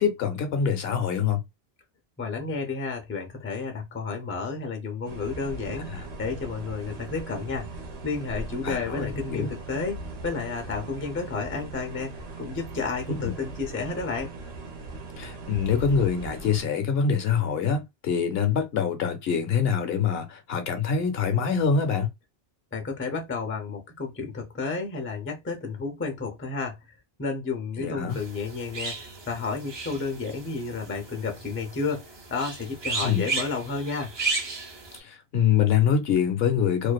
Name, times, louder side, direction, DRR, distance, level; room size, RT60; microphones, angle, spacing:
voice 1, 0.0-1.4 5.8-6.0 8.6-9.5 13.2-13.4 15.2-22.1 27.8-28.2 33.0-33.3 35.0-36.9, left 7 dB, 75° left, 0.8 m, -25 dB
voice 2, 2.2-7.7 8.0-14.3 22.7-34.1, left 4 dB, 20° left, 0.4 m, -32 dB
sound 1, 5.0-16.6, right 2 dB, 80° right, 1.0 m, -39 dB
sound 2, 28.1-35.0, right 3 dB, 35° right, 0.5 m, -34 dB
2.5 x 2.4 x 2.2 m
omnidirectional pair, 1.0 m